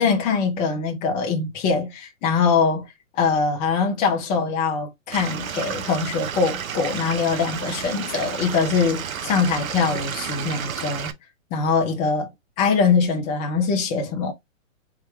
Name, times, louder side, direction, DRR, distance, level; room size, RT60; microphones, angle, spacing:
voice 1, 0.0-2.9 3.1-11.1 11.5-12.3 12.6-14.3, left 5 dB, 20° left, 0.7 m, -22 dB
Stream / Liquid, 5.1-11.1, right 7 dB, 80° right, 0.9 m, -31 dB
4.3 x 3.7 x 3.0 m
hypercardioid pair, 135°, 41 cm